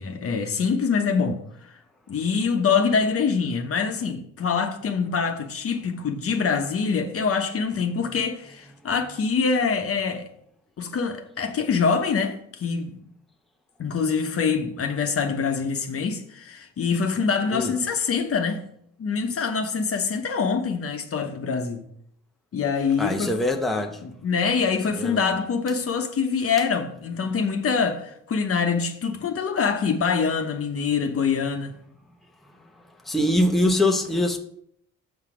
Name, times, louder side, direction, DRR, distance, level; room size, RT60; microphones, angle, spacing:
voice 1, 0.0-1.7 2.1-10.3 10.8-13.0 13.8-18.6 19.0-21.8 22.5-23.3 24.0-31.8, left 5 dB, 50° left, 1.0 m, -25 dB
voice 2, 23.0-24.0 24.9-25.4 33.0-34.4, left 1 dB, ahead, 0.8 m, -23 dB
6.5 x 5.8 x 4.9 m
cardioid pair, 90°, 30 cm